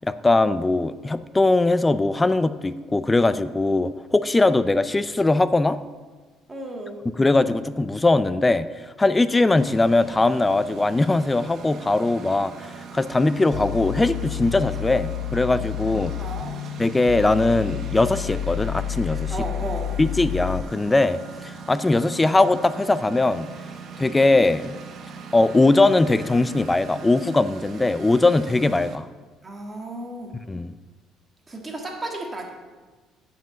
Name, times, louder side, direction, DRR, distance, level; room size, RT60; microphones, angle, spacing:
voice 1, 0.0-5.8 7.2-8.7 9.0-16.1 16.8-19.3 20.0-23.5 24.0-24.8 25.3-29.1 30.5-30.7, left 2 dB, 15° left, 14 dB, 0.3 m, -20 dB
voice 2, 6.5-7.0 15.9-16.6 19.3-19.8 29.4-30.3 31.5-32.5, right 2 dB, 20° right, 1 dB, 1.6 m, -34 dB
Engine, 9.6-29.0, right 5 dB, 50° right, 0.9 m, -41 dB
sound 1, 13.5-20.6, left 14 dB, 75° left, 0.4 m, -30 dB
7.4 x 5.7 x 7.5 m, 1.3 s
cardioid pair, 130°, 0 cm